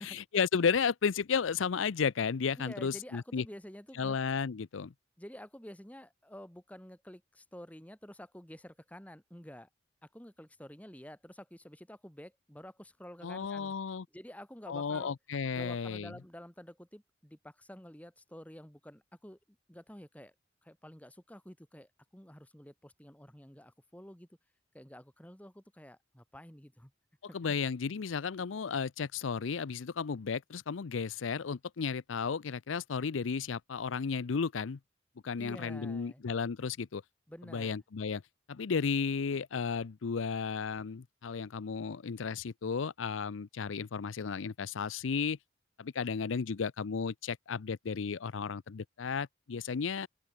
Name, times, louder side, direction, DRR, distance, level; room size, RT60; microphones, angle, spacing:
voice 1, 0.0-3.4 4.0-4.9 13.2-14.0 14.7-16.1 27.3-34.8 35.2-37.0 37.5-38.2 38.5-45.4 45.8-50.1, left 5 dB, 90° left, 0.5 m, -33 dB
voice 2, 2.6-4.2 5.2-9.7 10.0-13.7 14.1-15.1 15.5-20.3 20.6-24.3 24.7-26.9 35.4-36.2 37.3-37.8, equal, 10° left, 1.7 m, -50 dB
open air
head